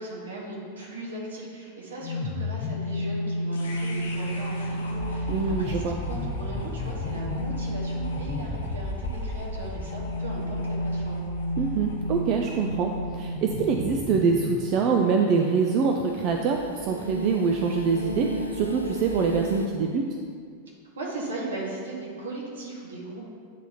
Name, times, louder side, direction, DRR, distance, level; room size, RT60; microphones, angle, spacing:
voice 1, 0.0-11.3 20.9-23.3, right 2 dB, 65° right, -3 dB, 1.3 m, -37 dB
sound 1, 2.0-14.9, left 1 dB, 45° left, 0.6 m, -32 dB
sound 2, 3.5-19.7, left 1 dB, 70° left, 0.9 m, -40 dB
voice 2, 5.3-6.0 11.6-20.1, right 5 dB, 40° right, 2 dB, 0.4 m, -25 dB
sound 3, 14.2-19.7, right 1 dB, 85° left, 0.3 m, -35 dB
8.2 x 3.4 x 4.2 m, 2.2 s
figure-of-eight pair, 90°, 0 cm